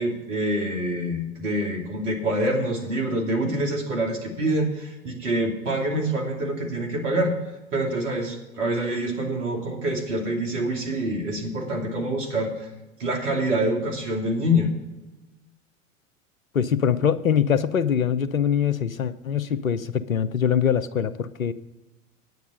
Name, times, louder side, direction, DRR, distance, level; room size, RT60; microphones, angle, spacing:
voice 1, 0.0-7.3 7.7-12.7 13.0-14.7, right 1 dB, 65° right, 1 dB, 2.6 m, -26 dB
voice 2, 16.5-21.5, left 8 dB, 85° left, 15 dB, 0.7 m, -23 dB
9.4 x 9.4 x 5.4 m, 1.1 s
figure-of-eight pair, 80°, 40 cm